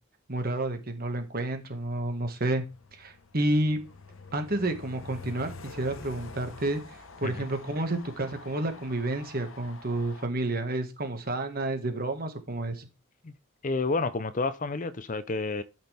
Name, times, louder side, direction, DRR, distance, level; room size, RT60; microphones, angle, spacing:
voice 1, 0.3-2.6 3.0-3.8 4.3-6.8 7.2-12.9, right 1 dB, 45° right, 1.8 m, -30 dB
Train, 1.8-10.2, left 3 dB, 70° left, 1.1 m, -47 dB
voice 2, 13.6-15.6, left 3 dB, 40° left, 0.6 m, -30 dB
12.5 x 6.0 x 3.5 m
head